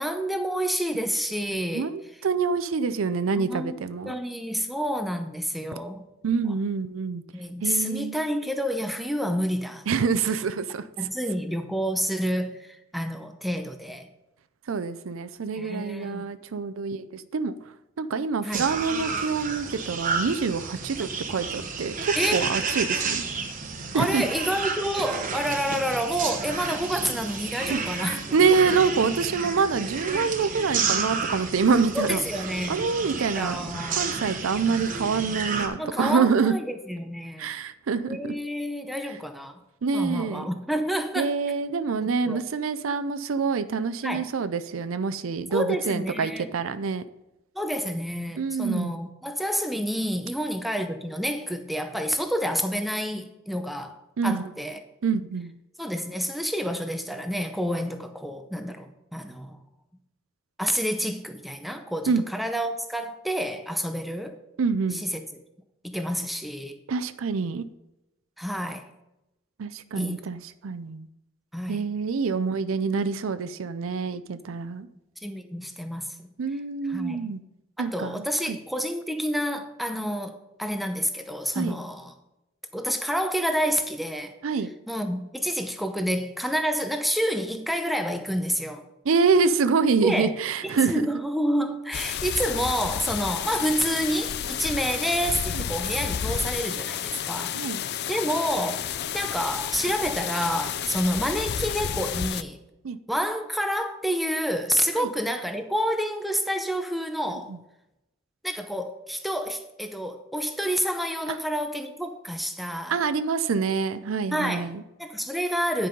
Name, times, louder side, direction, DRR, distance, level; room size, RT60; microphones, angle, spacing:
voice 1, 0.0-1.9 3.2-3.8 4.1-6.1 7.3-9.9 11.0-14.1 15.5-16.3 18.4-18.7 21.0-21.1 22.1-22.5 23.9-28.2 31.9-32.8 33.3-34.2 35.8-37.5 38.0-39.6 39.9-41.3 42.0-42.4 44.0-44.3 45.5-46.5 47.5-54.8 55.8-59.6 60.6-64.4 64.9-65.2 65.8-66.8 68.4-68.8 70.0-70.2 71.5-71.9 75.2-76.3 76.8-77.3 77.8-82.1 82.7-84.3 84.9-88.8 90.0-90.3 90.6-97.6 98.1-98.9 99.1-102.6 103.1-107.5 108.4-113.0 114.3-114.7 115.0-115.9, equal, ahead, 6 dB, 0.6 m, -29 dB
voice 2, 1.7-4.1 6.2-7.2 7.6-8.2 9.9-10.9 14.7-17.6 18.0-23.2 23.9-24.2 27.7-27.8 28.3-32.2 32.7-33.6 33.9-36.5 37.4-38.3 39.8-40.5 41.2-47.0 48.4-48.9 54.2-54.5 55.0-55.5 62.1-62.2 64.6-65.0 66.9-67.6 69.6-71.1 71.7-74.9 76.4-77.4 77.8-78.6 81.5-81.8 84.4-84.7 89.1-91.1 95.5-95.6 97.5-97.8 102.8-103.0 105.0-105.1 112.9-114.8, right 5 dB, 80° right, 12 dB, 0.5 m, -26 dB
sound 1, 18.5-35.7, right 5 dB, 40° right, 1.1 m, -31 dB
sound 2, 91.9-102.4, left 9 dB, 50° left, 0.4 m, -31 dB
10.0 x 5.4 x 5.2 m, 0.91 s
head